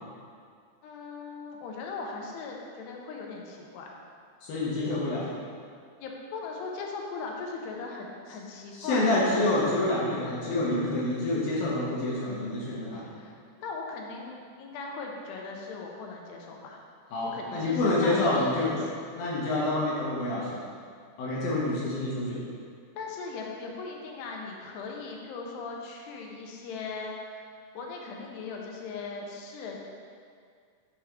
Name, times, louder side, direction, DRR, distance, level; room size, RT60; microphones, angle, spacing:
voice 1, 0.8-4.0 6.0-9.5 13.1-16.8 17.3-19.0 23.0-27.5 27.7-29.8, left 4 dB, 90° left, 0 dB, 2.8 m, -39 dB
voice 2, 4.4-5.3 8.7-13.1 17.1-18.8 19.2-20.6 21.2-22.4, left 2 dB, 70° left, -6 dB, 2.5 m, -27 dB
7.2 x 4.7 x 3.4 m, 2.2 s
omnidirectional pair, 4.8 m